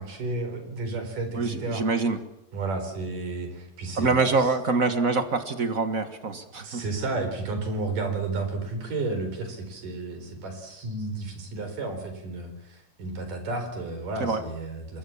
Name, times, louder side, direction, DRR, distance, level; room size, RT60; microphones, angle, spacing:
voice 1, 0.0-1.8 2.5-4.5 6.6-15.0, right 3 dB, 70° right, 7 dB, 5.9 m, -32 dB
voice 2, 1.3-2.2 4.0-6.8 14.2-14.4, right 3 dB, 45° right, 10 dB, 1.0 m, -25 dB
25.5 x 21.5 x 7.2 m, 0.83 s
omnidirectional pair, 3.9 m